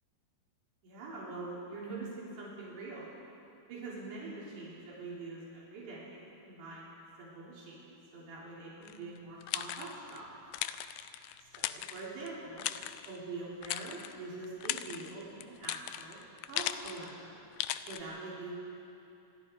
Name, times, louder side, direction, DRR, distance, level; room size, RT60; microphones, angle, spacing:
voice 1, 0.8-3.2 3.7-10.3 11.6-12.7 13.1-16.2 16.5-17.4 17.9-18.7, right 3 dB, 85° right, -6 dB, 5.8 m, -44 dB
sound 1, 8.9-10.2 10.5-12.3 12.6-13.2 13.6-14.1 14.4-17.1 17.6-18.0, left 13 dB, 80° left, 2.6 m, -38 dB
27.5 x 22.5 x 4.7 m, 2.7 s
omnidirectional pair, 4.8 m